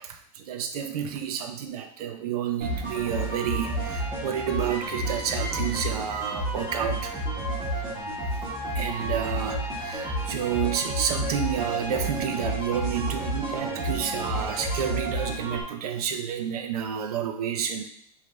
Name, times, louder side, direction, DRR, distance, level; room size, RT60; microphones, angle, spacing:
voice 1, 0.0-7.1 8.7-17.9, right 8 dB, 80° right, 6 dB, 0.7 m, -30 dB
sound 1, 2.6-15.6, right 1 dB, 20° right, 1.6 m, -31 dB
5.0 x 2.9 x 3.3 m, 0.66 s
supercardioid pair, 170°, 19 cm